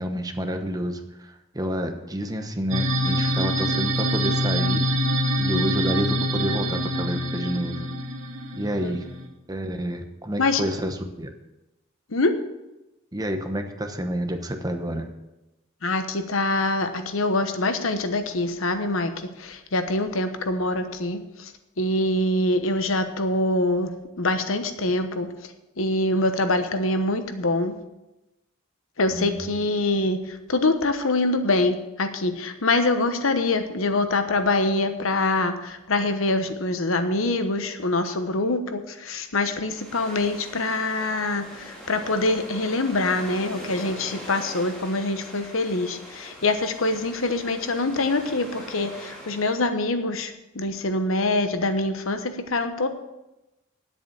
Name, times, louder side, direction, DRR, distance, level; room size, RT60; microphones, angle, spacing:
voice 1, 0.0-4.9 5.4-7.8 8.5-9.1 9.5-11.3 13.1-15.1 29.1-29.5, equal, 20° right, 6 dB, 1.0 m, -29 dB
sound 1, 2.7-9.3, equal, 75° right, 1.6 m, -25 dB
voice 2, 15.8-21.5 21.8-25.3 25.8-27.8 29.0-52.9, left 2 dB, 75° left, 8 dB, 1.1 m, -24 dB
sound 2, 39.7-49.7, equal, 5° left, 3.8 m, -42 dB
10.0 x 8.1 x 7.3 m, 0.97 s
head